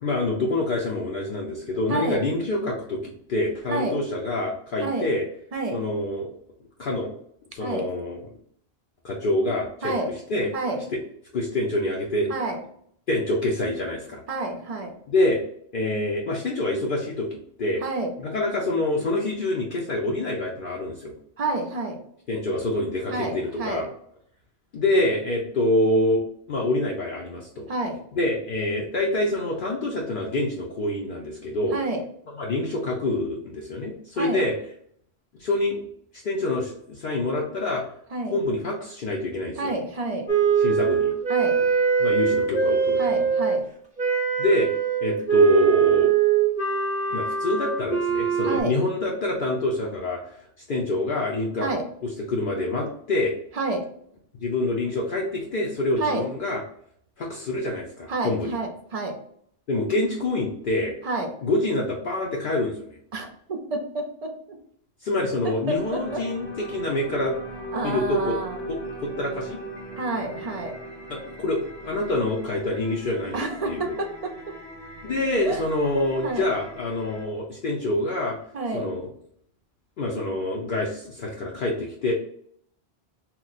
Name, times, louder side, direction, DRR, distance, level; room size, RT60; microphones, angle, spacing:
voice 1, 0.0-5.2 5.7-6.3 6.8-7.1 7.5-8.2 9.0-9.9 10.3-10.5 11.3-12.3 13.1-14.2 15.1-15.4 15.7-17.8 18.2-21.1 22.3-23.9 24.7-27.7 28.1-31.8 32.4-34.5 35.4-35.9 36.2-37.8 38.3-39.7 40.6-41.1 42.0-43.0 44.4-44.7 45.0-46.1 47.1-50.2 50.7-51.7 52.0-53.3 54.4-56.6 57.2-58.6 59.7-60.9 61.4-63.0 65.0-67.3 67.8-68.4 68.7-69.6 71.1-74.0 75.0-78.4 78.7-79.1 80.0-82.1, left 2 dB, 60° left, -2 dB, 0.7 m, -26 dB
voice 2, 1.9-2.2 3.7-4.0 4.8-5.1 5.5-5.8 7.6-7.9 9.8-10.1 10.5-10.8 12.3-12.6 14.3-15.0 17.8-18.1 21.4-22.0 23.1-23.9 27.7-28.0 31.7-32.0 34.2-34.4 38.1-38.4 39.6-40.3 41.3-41.6 43.0-43.7 48.4-48.7 51.6-51.8 53.5-53.8 56.0-56.3 58.1-59.2 61.0-61.3 63.1-64.6 65.4-66.2 67.7-68.6 70.0-70.7 73.3-74.5 75.4-75.6 76.2-76.5 78.5-78.9, right 2 dB, 50° right, 3 dB, 0.5 m, -29 dB
Wind instrument woodwind instrument, 40.3-43.6 44.0-48.6, right 7 dB, 10° right, 0.7 m, -22 dB
sound 1, 65.7-77.2, equal, 85° left, 1.4 m, -39 dB
2.9 x 2.1 x 3.9 m, 0.66 s
omnidirectional pair, 1.1 m